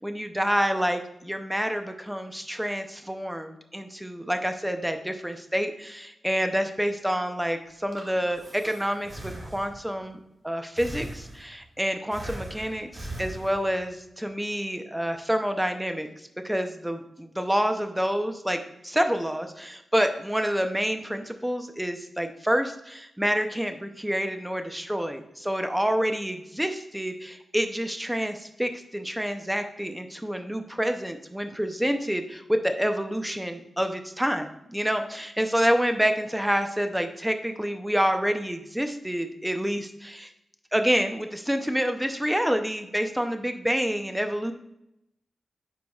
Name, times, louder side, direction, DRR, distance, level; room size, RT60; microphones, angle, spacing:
voice 1, 0.0-40.3 40.7-44.5, equal, 5° right, 6 dB, 0.6 m, -28 dB
Breathing, 7.7-10.0 10.8-11.7 12.1-13.9, right 1 dB, 30° right, 1.5 m, -40 dB
9.4 x 4.6 x 2.3 m, 0.81 s
wide cardioid pair, 100°, 0 cm